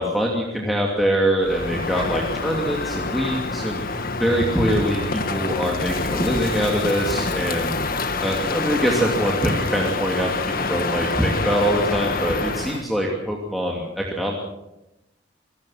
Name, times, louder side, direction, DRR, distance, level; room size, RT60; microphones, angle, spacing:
voice 1, 0.0-7.8 8.2-14.3, equal, ahead, -2 dB, 2.9 m, -23 dB
Crow, 1.4-12.8, left 3 dB, 50° left, 1.6 m, -26 dB
28.0 x 18.0 x 5.9 m, 0.91 s
head